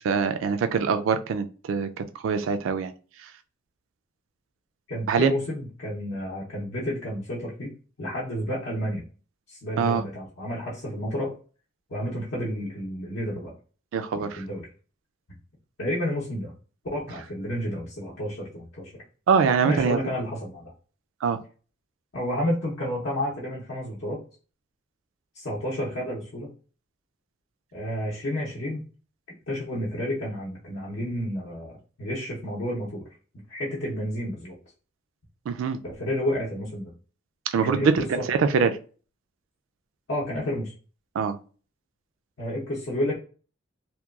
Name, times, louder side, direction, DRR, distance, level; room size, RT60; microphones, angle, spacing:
voice 1, 0.0-2.9 3.2-3.3 5.1-5.3 9.8-10.0 13.9-14.4 19.3-20.0 21.2-21.4 35.5-35.8 37.5-38.7 41.2-41.4, right 6 dB, 85° right, 9 dB, 0.3 m, -24 dB
voice 2, 4.9-9.0 9.5-11.4 11.9-13.5 14.1-14.6 15.8-16.5 16.9-18.9 19.6-20.7 22.1-24.2 25.3-26.5 27.7-28.8 29.5-33.0 33.5-34.6 35.8-36.9 37.6-38.2 40.1-40.7 42.4-43.2, left 1 dB, 65° left, -6 dB, 0.7 m, -30 dB
2.9 x 2.2 x 2.3 m, 0.38 s
head